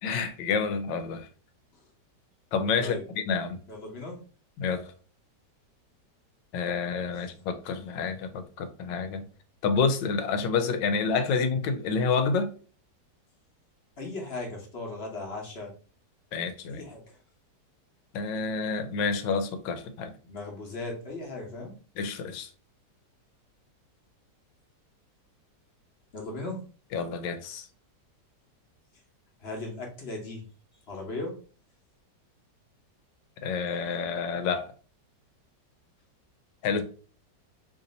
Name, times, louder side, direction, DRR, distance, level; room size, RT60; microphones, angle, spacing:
voice 1, 0.0-1.3 2.5-3.6 4.6-4.9 6.5-9.2 9.6-12.5 16.3-16.8 18.1-20.1 22.0-22.5 26.9-27.7 33.4-34.7 36.6-36.8, left 5 dB, 90° left, 1.3 m, -28 dB
voice 2, 3.7-4.2 14.0-15.7 16.7-17.2 20.3-21.7 26.1-26.6 29.4-30.5 30.9-31.4 36.7-36.8, left 2 dB, 40° left, 1.1 m, -37 dB
3.2 x 2.7 x 3.9 m
omnidirectional pair, 1.9 m